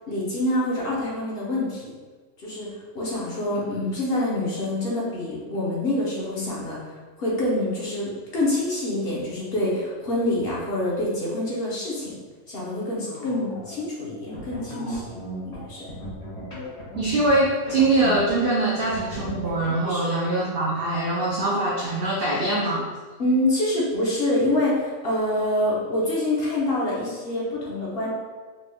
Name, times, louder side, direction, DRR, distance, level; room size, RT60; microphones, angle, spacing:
voice 1, 0.1-1.9 2.4-2.7 2.9-6.9 7.2-12.1 12.5-15.2 15.4-15.9 19.8-20.1 23.2-28.1, left 1 dB, 50° left, -6 dB, 0.9 m, -26 dB
sound 1, 13.0-13.8 14.3-18.4 18.7-19.7, equal, 25° left, 1.4 m, -36 dB
voice 2, 17.0-22.9, right 2 dB, 80° right, -3 dB, 0.5 m, -23 dB
4.0 x 3.3 x 2.2 m, 1.4 s
omnidirectional pair, 1.5 m